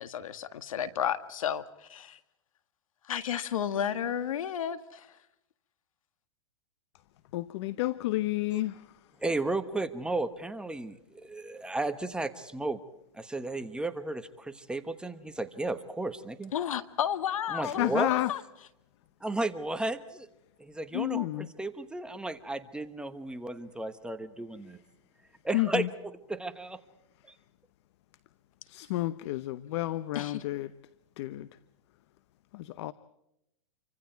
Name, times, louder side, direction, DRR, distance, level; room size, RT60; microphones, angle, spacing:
voice 1, 0.0-2.2 3.0-5.2 16.5-17.8 18.1-18.4 30.2-30.4, left 9 dB, 80° left, 1.9 m, -32 dB
voice 2, 7.3-8.9 17.6-18.3 20.9-21.5 25.5-25.9 28.7-30.7 31.2-31.5 32.5-32.9, left 17 dB, 55° left, 0.9 m, -30 dB
voice 3, 9.2-12.8 13.1-16.5 17.5-18.1 19.2-20.3 20.6-24.8 25.4-26.8, right 2 dB, 5° right, 1.2 m, -34 dB
28.5 x 25.0 x 4.6 m
hypercardioid pair, 135°, 17 cm